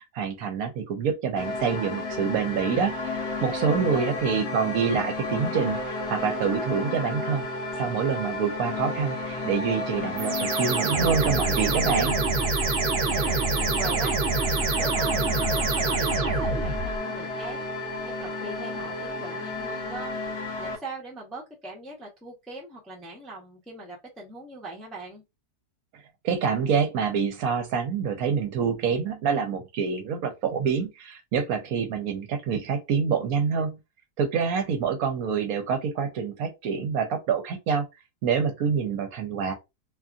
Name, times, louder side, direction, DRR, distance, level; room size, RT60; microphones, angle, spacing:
voice 1, 0.1-7.4 7.8-12.1 26.2-33.7 34.2-37.8 38.2-39.5, right 6 dB, 70° right, 1.0 m, -26 dB
sound 1, 1.4-20.8, left 2 dB, 55° left, 0.8 m, -32 dB
sound 2, 10.2-17.0, right 4 dB, 90° right, 0.4 m, -26 dB
voice 2, 12.9-20.2 20.6-25.2, right 2 dB, ahead, 0.5 m, -41 dB
2.7 x 2.5 x 2.4 m
omnidirectional pair, 1.7 m